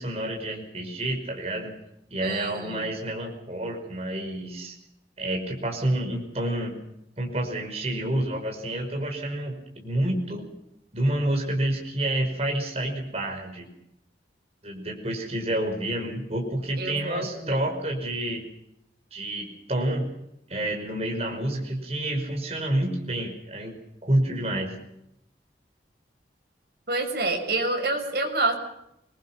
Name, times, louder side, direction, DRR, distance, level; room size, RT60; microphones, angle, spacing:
voice 1, 0.0-1.7 2.1-4.8 5.2-6.7 7.2-10.5 10.9-13.7 14.6-18.4 19.1-20.1 20.5-24.7, right 1 dB, 35° right, 2 dB, 5.5 m, -29 dB
voice 2, 2.2-2.9 16.8-17.6 26.9-28.5, right 2 dB, 55° right, 2 dB, 7.0 m, -28 dB
27.5 x 22.0 x 5.9 m, 0.81 s
head